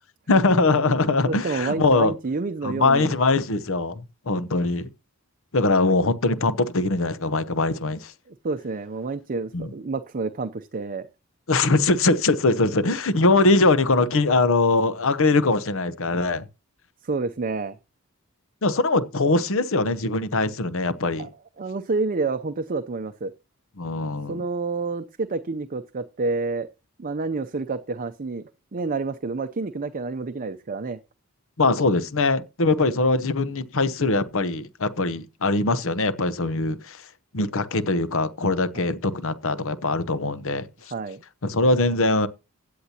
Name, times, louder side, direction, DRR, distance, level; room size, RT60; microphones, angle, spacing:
voice 1, 0.3-2.1 2.6-4.9 5.5-8.1 9.5-9.7 11.5-16.5 18.6-21.3 23.8-24.4 31.6-37.0 37.3-40.7 41.4-42.3, left 3 dB, 65° left, 0.9 m, -22 dB
voice 2, 1.3-3.1 8.3-11.1 17.0-17.8 21.2-21.3 21.6-23.3 24.3-26.7 27.0-28.4 28.7-31.0 38.7-38.9 40.9-41.2, right 3 dB, 40° right, 0.6 m, -29 dB
16.0 x 8.6 x 2.9 m
head